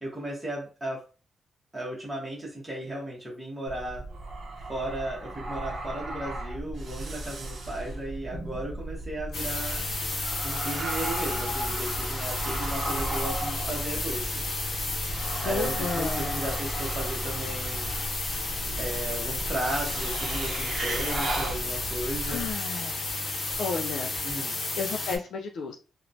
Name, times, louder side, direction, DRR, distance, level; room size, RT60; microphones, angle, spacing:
voice 1, 0.0-1.0 1.7-4.0 4.7-9.9 10.4-14.3 15.4-17.9 18.8-22.5 24.2-24.6, right 1 dB, 5° right, -5 dB, 1.0 m, -35 dB
sound 1, 3.7-22.5, right 2 dB, 50° right, 0.7 m, -35 dB
sound 2, 9.3-25.2, left 3 dB, 60° left, 0.7 m, -32 dB
voice 2, 15.4-16.4 22.3-23.0 23.6-24.1 24.8-25.8, left 5 dB, 75° left, 2 dB, 0.3 m, -32 dB
3.0 x 2.1 x 2.6 m, 0.35 s
wide cardioid pair, 165°, 0 cm